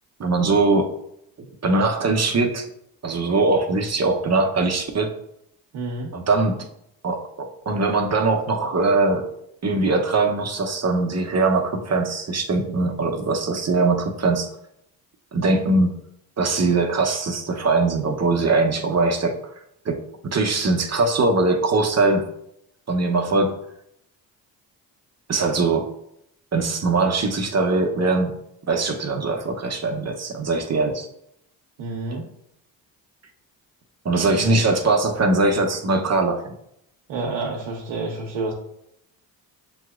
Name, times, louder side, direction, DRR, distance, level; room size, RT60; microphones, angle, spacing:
voice 1, 0.2-0.9 1.4-2.7 3.0-5.1 6.1-6.5 7.0-9.3 9.6-14.5 15.3-15.9 16.4-19.3 19.8-22.2 22.9-23.5 25.3-25.9 26.5-28.3 28.7-31.1 32.1-32.2 34.0-36.5, right 3 dB, 35° right, 3 dB, 0.8 m, -21 dB
voice 2, 5.7-6.2 31.8-32.3 34.3-34.6 37.1-38.5, right 3 dB, 75° right, -1 dB, 0.9 m, -29 dB
7.0 x 2.9 x 2.4 m, 0.76 s
supercardioid pair, 55°, 45 cm